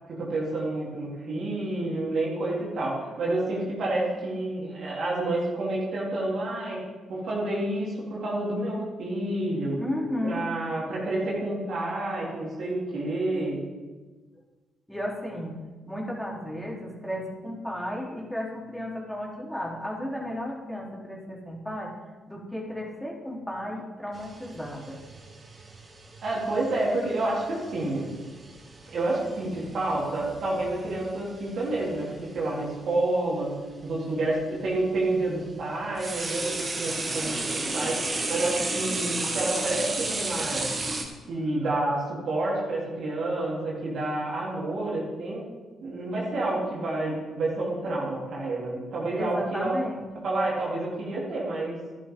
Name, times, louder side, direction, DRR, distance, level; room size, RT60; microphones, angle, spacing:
voice 1, 0.1-6.8 7.1-9.8 10.2-13.6 26.2-28.2 28.9-33.5 33.8-38.0 38.3-40.7 41.3-45.5 45.8-49.8 50.2-51.8, right 2 dB, 55° right, -4 dB, 3.6 m, -29 dB
voice 2, 9.8-10.5 14.9-15.5 15.9-21.9 22.3-25.0 49.1-50.2, left 1 dB, 5° left, -4 dB, 3.8 m, -34 dB
sound 1, 24.1-32.3 33.4-33.5 34.3-41.0, right 2 dB, 40° right, 2.3 m, -34 dB
13.5 x 11.5 x 3.8 m, 1.3 s
hypercardioid pair, 40°, 0 cm